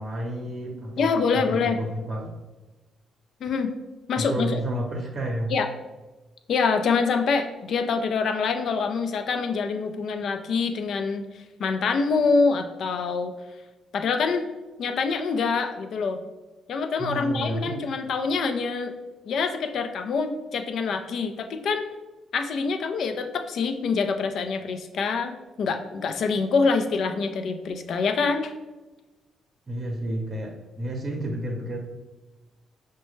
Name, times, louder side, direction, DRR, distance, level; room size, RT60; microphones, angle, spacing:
voice 1, 0.0-2.4 4.1-5.5 17.0-17.8 29.7-31.8, right 1 dB, 35° right, 1 dB, 0.8 m, -31 dB
voice 2, 1.0-1.8 3.4-3.7 4.1-4.6 5.5-5.7 6.5-11.3 11.6-13.3 13.9-14.5 14.8-16.2 16.7-18.9 19.3-21.9 22.3-28.5, left 4 dB, 65° left, 6 dB, 0.4 m, -25 dB
6.0 x 2.2 x 3.1 m, 1.1 s
cardioid pair, 90°, 0 cm